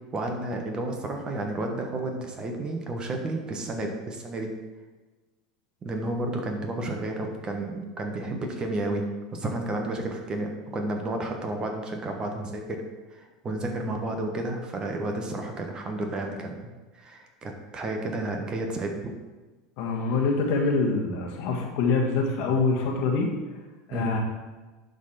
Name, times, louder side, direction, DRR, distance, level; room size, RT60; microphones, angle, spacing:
voice 1, 0.1-4.5 5.8-12.8 13.1-19.0 23.9-24.2, right 2 dB, 30° right, 3 dB, 1.4 m, -31 dB
voice 2, 19.8-23.3 23.9-24.2, left 4 dB, 55° left, 1 dB, 1.4 m, -25 dB
11.0 x 4.1 x 4.3 m, 1.2 s
hypercardioid pair, 80°, 3 cm